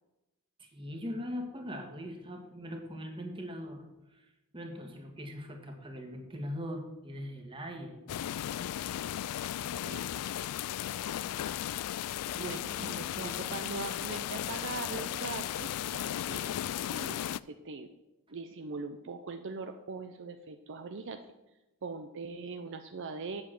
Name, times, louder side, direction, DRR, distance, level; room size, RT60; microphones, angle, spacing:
voice 1, 0.6-3.8 4.1-8.0 12.4-13.6, equal, 25° right, 3 dB, 1.7 m, -41 dB
sound 1, 8.1-17.4, left 11 dB, 85° left, 0.3 m, -35 dB
voice 2, 12.3-16.5 16.9-17.9 18.3-21.2 21.8-23.4, right 4 dB, 55° right, 7 dB, 0.6 m, -41 dB
8.1 x 7.6 x 7.6 m, 1.0 s
head